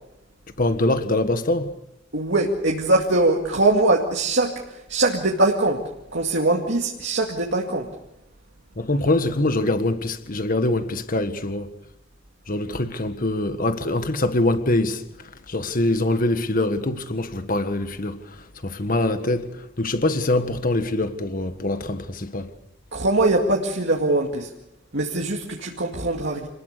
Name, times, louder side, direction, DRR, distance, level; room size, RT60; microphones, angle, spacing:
voice 1, 0.6-1.7 8.8-11.7 12.5-22.5, left 2 dB, 45° left, 1.6 m, -24 dB
voice 2, 2.1-5.8 6.1-7.9 22.9-24.5 24.9-26.5, right 2 dB, 65° right, 2.2 m, -22 dB
27.5 x 20.5 x 6.8 m
head